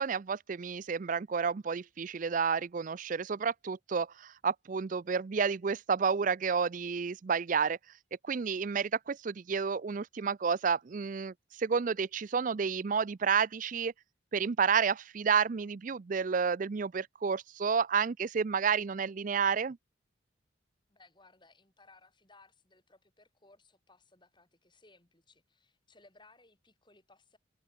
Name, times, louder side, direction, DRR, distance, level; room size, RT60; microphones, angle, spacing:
voice 1, 0.0-7.8 8.3-13.9 14.3-19.8, right 6 dB, 40° right, 0.4 m, -30 dB
voice 2, 20.9-27.4, left 3 dB, 20° left, 6.1 m, -62 dB
head